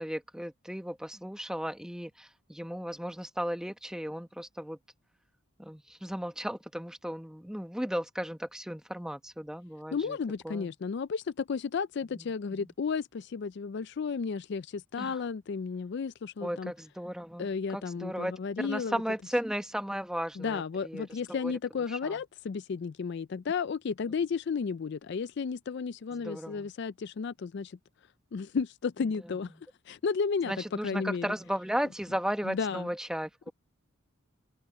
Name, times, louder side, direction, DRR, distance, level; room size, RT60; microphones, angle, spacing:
voice 1, 0.0-4.8 5.6-10.2 10.4-10.7 12.1-12.2 12.5-12.7 15.0-15.2 16.4-18.3 18.6-21.1 21.4-21.6 21.9-22.2 26.1-26.7 30.5-33.5, equal, 5° right, 1.0 m, -35 dB
voice 2, 9.9-16.7 17.4-19.0 20.4-27.8 28.3-29.5 29.9-30.5 30.8-31.3 32.5-32.9, left 5 dB, 50° left, 0.3 m, -33 dB
head